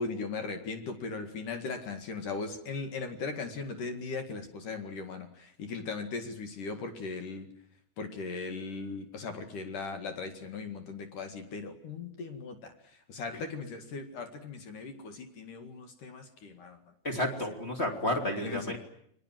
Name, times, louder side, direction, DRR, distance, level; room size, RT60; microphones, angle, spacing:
voice 1, 0.0-7.5 8.0-16.8 17.1-17.4 18.4-18.8, left 4 dB, 50° left, 7 dB, 2.9 m, -38 dB
voice 2, 17.0-18.8, left 1 dB, 20° left, 3 dB, 1.9 m, -31 dB
30.0 x 23.0 x 7.7 m, 0.72 s
omnidirectional pair, 5.8 m